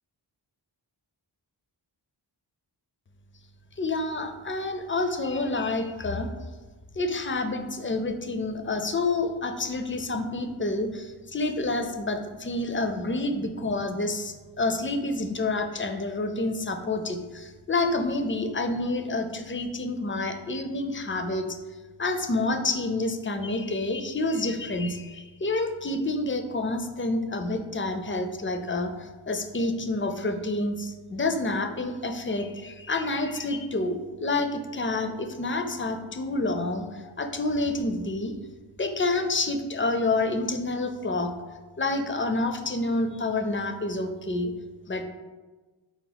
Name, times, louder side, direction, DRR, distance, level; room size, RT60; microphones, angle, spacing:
voice 1, 3.8-6.3 6.9-21.5 22.0-38.3 38.8-41.3 41.8-44.5 44.9-45.0, left 2 dB, 30° left, 6 dB, 0.4 m, -28 dB
4.1 x 2.9 x 3.9 m, 1.3 s
wide cardioid pair, 50°, 47 cm